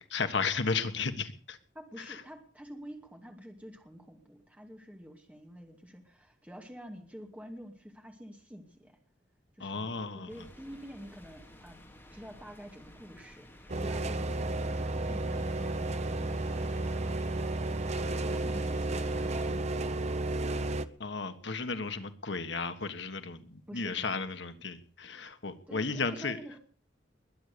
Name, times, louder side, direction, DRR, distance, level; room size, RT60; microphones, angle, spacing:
voice 1, 0.0-1.6 2.0-2.2 9.6-10.4 21.0-26.4, left 4 dB, 75° left, 9 dB, 1.5 m, -34 dB
voice 2, 1.7-9.0 9.6-11.8 12.1-13.5 13.8-17.4 18.0-20.5 23.7-24.3 25.7-26.6, equal, 10° right, 3 dB, 2.5 m, -48 dB
sound 1, 10.3-19.5, left 1 dB, 10° left, 4.5 m, -53 dB
sound 2, 13.7-20.9, right 2 dB, 40° right, 0.9 m, -32 dB
21.5 x 9.4 x 6.8 m, 0.43 s
head